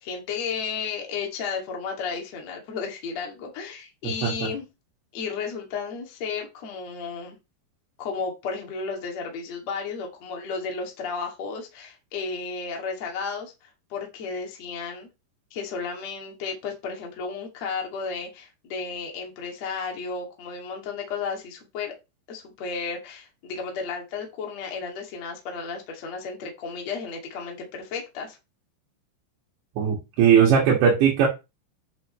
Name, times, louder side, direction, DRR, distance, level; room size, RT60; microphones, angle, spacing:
voice 1, 0.0-4.6 5.1-7.4 8.0-15.1 15.5-21.9 22.3-28.4, left 5 dB, 40° left, 3.2 m, -33 dB
voice 2, 29.8-31.3, right 7 dB, 70° right, 4.5 m, -18 dB
11.0 x 6.9 x 3.2 m
omnidirectional pair, 5.4 m